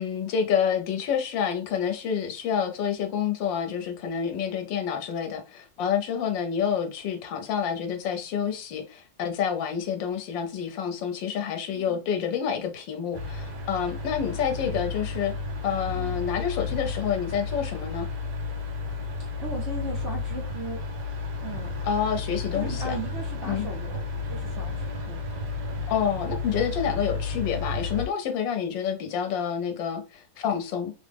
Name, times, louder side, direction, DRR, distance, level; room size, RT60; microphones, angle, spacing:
voice 1, 0.0-15.3 15.6-18.1 21.8-23.0 23.4-23.7 25.9-30.9, left 7 dB, 80° left, 1.4 m, -28 dB
voice 2, 11.7-12.0 15.9-16.2 19.2-20.8 21.4-21.7 22.5-25.2, right 3 dB, 55° right, 0.9 m, -37 dB
sound 1, 13.1-28.1, left 4 dB, 85° right, 1.5 m, -32 dB
3.5 x 2.0 x 3.3 m
omnidirectional pair, 2.0 m